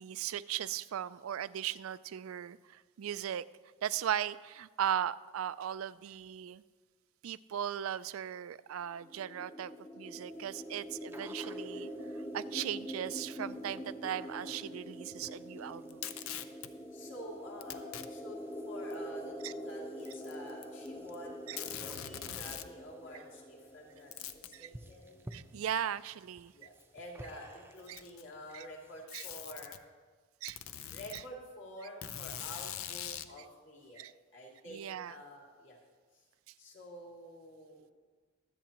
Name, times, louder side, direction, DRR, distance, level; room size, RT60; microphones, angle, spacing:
voice 1, 0.0-3.4 3.8-6.6 7.2-16.1 19.4-19.5 21.5-21.6 24.5-24.7 25.3-26.5 27.9-28.0 28.5-28.7 29.1-29.3 30.4-30.6 31.1-31.2 34.0-34.1 34.7-35.1, right 10 dB, 85° right, 15 dB, 0.4 m, -38 dB
sound 1, 8.9-24.6, equal, 15° left, 0.8 m, -44 dB
sound 2, 10.2-29.1, right 1 dB, 10° right, 0.5 m, -58 dB
Packing tape duct tape, 15.9-16.7 17.6-18.1 18.9-19.0 20.0-20.9 21.1-21.2 21.6-22.7 24.1-24.5 25.8-25.9 26.8-26.9 27.7-28.3 29.1-29.8 30.5-31.2 32.0-33.3, left 10 dB, 90° left, 0.6 m, -42 dB
voice 2, 16.9-18.4 18.7-25.3 26.5-29.8 30.9-35.8 36.1-36.2 36.6-37.8, equal, 60° left, -3 dB, 2.8 m, -49 dB
23.5 x 8.3 x 3.0 m, 1.5 s
head